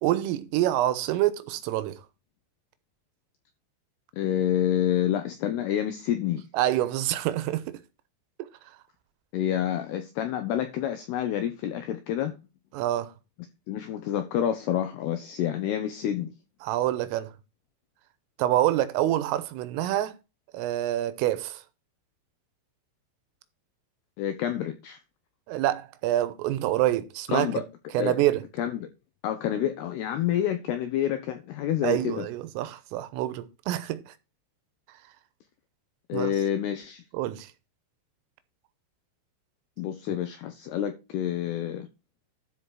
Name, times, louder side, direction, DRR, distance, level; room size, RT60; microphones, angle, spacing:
voice 1, 0.0-2.0 6.5-7.8 12.7-13.1 16.6-17.3 18.4-20.2 20.5-21.6 25.5-27.5 27.9-28.4 31.8-34.1 36.1-36.3 37.1-37.5, right 14 dB, 85° right, 3.5 m, -26 dB
voice 2, 4.2-6.4 9.3-12.4 13.7-16.3 24.2-25.0 27.3-27.6 28.0-28.2 28.6-28.9 29.2-32.3 36.1-37.0 39.8-41.9, left 10 dB, 85° left, 2.3 m, -28 dB
12.5 x 5.0 x 4.7 m
omnidirectional pair, 5.8 m